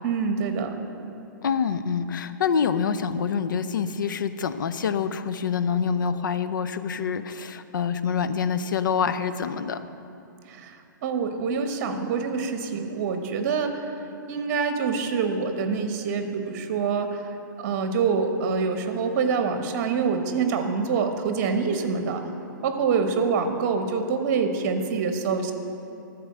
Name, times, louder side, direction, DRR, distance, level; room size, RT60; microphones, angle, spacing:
voice 1, 0.0-0.7 10.5-10.8 11.0-13.9 14.3-17.2 17.6-22.2 22.6-25.5, right 5 dB, 45° right, 6 dB, 1.1 m, -26 dB
voice 2, 1.4-9.8, left 6 dB, 70° left, 11 dB, 0.5 m, -26 dB
13.0 x 4.6 x 7.4 m, 2.7 s
hypercardioid pair, 125°, 11 cm